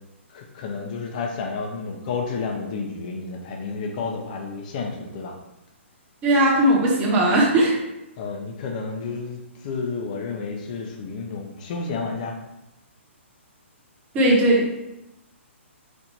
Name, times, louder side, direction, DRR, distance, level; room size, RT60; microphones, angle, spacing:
voice 1, 0.3-5.3 8.2-12.4, left 4 dB, 35° left, 2 dB, 0.6 m, -31 dB
voice 2, 6.2-7.8 14.1-14.8, right 1 dB, 15° right, -3 dB, 0.9 m, -18 dB
4.3 x 2.5 x 4.4 m, 0.93 s
hypercardioid pair, 160°, 7 cm